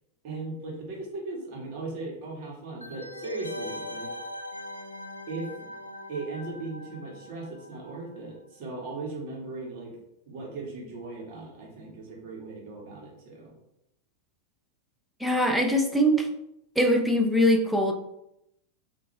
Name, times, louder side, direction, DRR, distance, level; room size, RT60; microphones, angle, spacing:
voice 1, 0.2-4.1 5.3-5.7 6.1-10.0 10.3-13.5, right 3 dB, 45° right, -2 dB, 2.5 m, -38 dB
sound 1, 2.8-8.3 8.5-8.6, left 2 dB, 85° left, 0.5 m, -41 dB
voice 2, 15.2-16.3 16.8-17.9, equal, 5° right, 3 dB, 0.9 m, -22 dB
8.1 x 3.7 x 3.6 m, 0.82 s
figure-of-eight pair, 90°, 0 cm